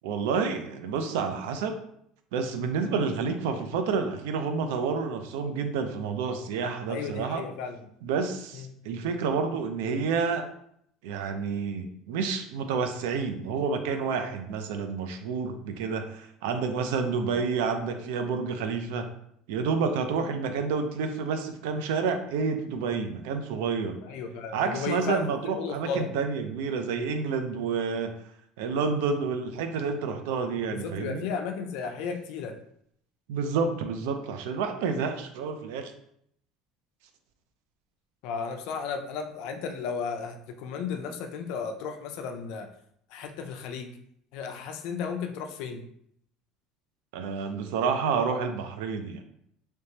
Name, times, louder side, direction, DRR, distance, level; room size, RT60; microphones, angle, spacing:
voice 1, 0.0-1.8 2.3-7.4 8.0-10.4 11.0-19.1 19.5-24.0 24.5-28.1 28.6-31.2 33.3-35.9 47.1-49.2, right 5 dB, 90° right, 7 dB, 0.5 m, -29 dB
voice 2, 6.9-7.9 8.5-8.7 24.0-26.1 30.7-32.6 38.2-42.7 43.1-43.9 44.3-45.8, left 5 dB, 70° left, 6 dB, 0.5 m, -34 dB
3.3 x 3.1 x 2.8 m, 0.71 s
cardioid pair, 130°, 0 cm